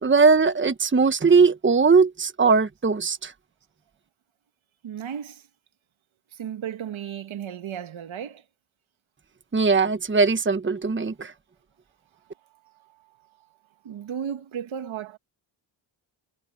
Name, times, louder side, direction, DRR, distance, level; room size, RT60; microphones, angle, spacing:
voice 1, 0.0-3.3 9.5-11.3, right 4 dB, 25° right, 1.3 m, -20 dB
voice 2, 4.8-5.5 6.3-8.4 13.8-15.2, right 9 dB, 70° right, 2.0 m, -34 dB
cardioid pair, 65°, 50 cm